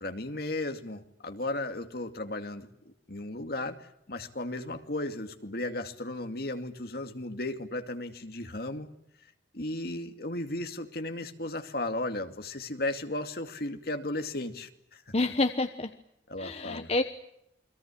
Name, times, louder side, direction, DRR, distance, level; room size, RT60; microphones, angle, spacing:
voice 1, 0.0-2.7 3.1-8.9 9.5-15.0 16.3-16.9, left 2 dB, 55° left, 7 dB, 2.4 m, -35 dB
voice 2, 15.1-15.9 16.4-17.0, left 2 dB, 35° left, 8 dB, 1.1 m, -28 dB
29.5 x 22.5 x 8.6 m, 0.77 s
head